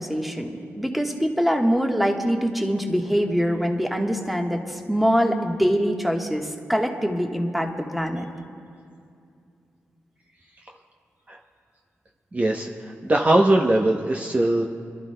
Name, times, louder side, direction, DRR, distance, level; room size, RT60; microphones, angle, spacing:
voice 1, 0.0-8.2, equal, ahead, 2 dB, 1.3 m, -24 dB
voice 2, 12.3-14.7, right 1 dB, 30° right, 1 dB, 0.8 m, -21 dB
30.0 x 12.0 x 2.2 m, 2.4 s
cardioid pair, 65°, 5 cm